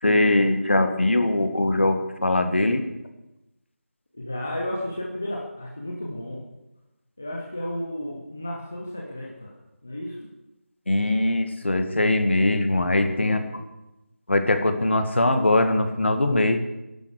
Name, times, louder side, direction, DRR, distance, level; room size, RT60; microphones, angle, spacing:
voice 1, 0.0-2.8 10.9-13.4 14.3-16.6, left 2 dB, 55° left, 7 dB, 1.9 m, -21 dB
voice 2, 4.1-6.4 7.2-9.5 9.8-10.3 13.1-13.7, left 1 dB, 10° left, -2 dB, 0.5 m, -33 dB
22.0 x 11.0 x 4.9 m, 0.97 s
figure-of-eight pair, 180°, 8 cm